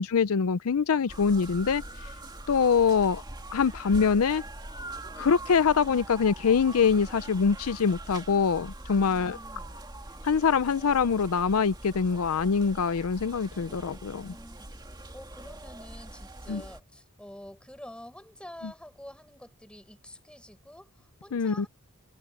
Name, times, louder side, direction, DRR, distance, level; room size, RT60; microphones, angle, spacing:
voice 1, 0.0-1.8 2.5-3.2 3.5-4.4 5.2-9.4 10.2-14.3 16.5-16.6 21.3-21.7, left 6 dB, 70° left, 0.5 m, -24 dB
sound 1, 1.1-16.8, right 1 dB, 20° right, 2.0 m, -43 dB
voice 2, 8.9-9.8 14.2-14.9 15.1-21.7, left 1 dB, 5° left, 7.5 m, -48 dB
head